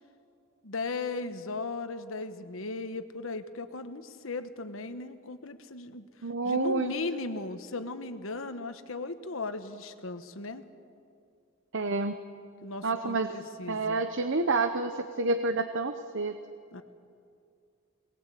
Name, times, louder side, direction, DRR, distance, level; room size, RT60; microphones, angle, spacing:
voice 1, 0.6-6.1 6.4-10.7 12.6-14.0 16.7-16.8, left 3 dB, 70° left, 9 dB, 1.2 m, -37 dB
voice 2, 6.2-6.9 11.7-12.2 12.8-13.3 13.7-16.4, right 3 dB, 60° right, 8 dB, 0.9 m, -28 dB
23.0 x 19.0 x 8.4 m, 2.4 s
head